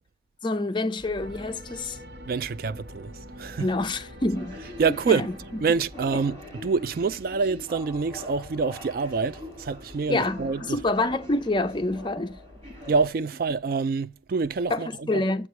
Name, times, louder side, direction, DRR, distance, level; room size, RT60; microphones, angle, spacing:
voice 1, 0.4-2.0 3.6-4.6 5.1-5.3 10.1-12.4 14.7-15.5, left 2 dB, 25° left, 0.5 m, -27 dB
sound 1, 1.0-13.1, left 1 dB, 35° right, 4.2 m, -44 dB
sound 2, 1.2-6.7, equal, 70° right, 1.3 m, -45 dB
voice 2, 2.3-3.7 4.8-5.3 5.6-10.8 12.9-15.2, right 4 dB, 50° right, 0.3 m, -26 dB
7.6 x 4.7 x 6.5 m
head